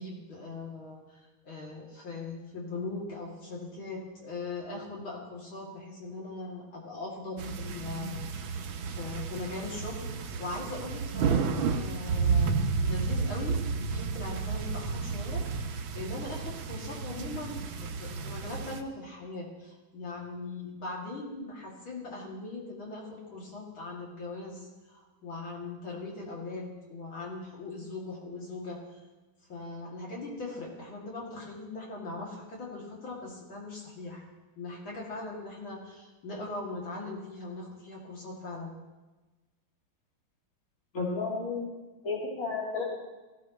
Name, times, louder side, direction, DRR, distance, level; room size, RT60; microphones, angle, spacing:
voice 1, 0.0-29.0 29.5-34.3 34.6-38.7, left 2 dB, 70° left, -3 dB, 3.4 m, -40 dB
sound 1, 7.4-18.8, right 5 dB, 70° right, 1.6 m, -31 dB
voice 2, 40.9-41.7 42.0-42.8, left 4 dB, 40° left, -3 dB, 3.0 m, -32 dB
17.0 x 16.0 x 3.1 m, 1.2 s
omnidirectional pair, 2.3 m